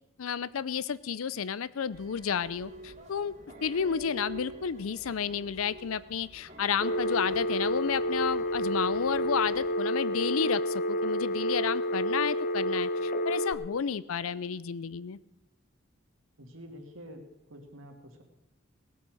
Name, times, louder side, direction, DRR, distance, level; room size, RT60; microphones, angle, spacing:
voice 1, 0.2-3.3 3.6-15.2, left 7 dB, 90° left, 18 dB, 0.5 m, -31 dB
sound 1, 1.9-9.7, equal, 35° right, 2.1 m, -46 dB
Telephone, 6.8-13.5, equal, 45° left, 0.8 m, -29 dB
voice 2, 16.4-18.2, equal, 80° right, 4 dB, 2.1 m, -48 dB
18.0 x 8.5 x 6.4 m, 0.94 s
head